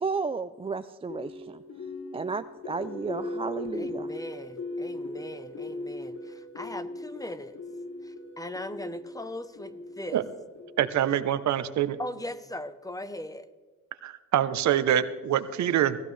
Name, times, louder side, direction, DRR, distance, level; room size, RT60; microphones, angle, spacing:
voice 1, 0.0-1.6 2.1-4.1, right 4 dB, 20° right, 11 dB, 0.4 m, -33 dB
sound 1, 1.1-11.2, left 2 dB, 70° left, 3.2 m, -39 dB
voice 2, 3.7-7.6 8.0-10.2 12.0-13.5, left 1 dB, 10° left, 13 dB, 0.8 m, -39 dB
voice 3, 10.8-12.0 14.0-16.0, right 10 dB, 65° right, 13 dB, 0.9 m, -25 dB
18.5 x 14.5 x 3.3 m, 1.4 s
cardioid pair, 90°, 30 cm